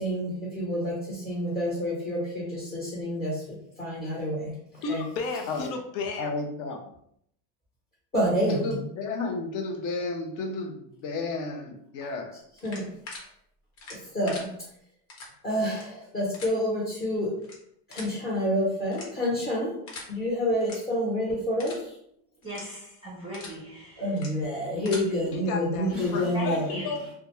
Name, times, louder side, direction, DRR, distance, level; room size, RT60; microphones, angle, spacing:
voice 1, 0.0-5.0 8.1-8.7 12.6-13.2 13.9-14.7 15.4-17.4 17.9-19.7 20.1-21.9 24.0-26.8, equal, 20° left, 0.9 m, -28 dB
voice 2, 4.8-6.3 25.3-27.1, left 4 dB, 75° left, 0.7 m, -33 dB
voice 3, 6.2-6.8 8.5-12.4, left 3 dB, 40° left, 0.5 m, -32 dB
sound 1, 12.6-13.2 13.8-14.4 15.1-15.3 15.7-15.8 16.3-16.5 17.4-17.5 17.9-18.1 18.9-19.3 19.9-20.1 20.6-20.7 21.1-21.2 21.6-21.8 22.4-22.6 23.1-23.5 24.1-24.3 24.7-25.0, left 3 dB, 90° left, 1.1 m, -41 dB
voice 4, 22.4-24.0 26.3-26.9, equal, 10° right, 0.5 m, -38 dB
2.4 x 2.2 x 3.0 m
supercardioid pair, 135°, 49 cm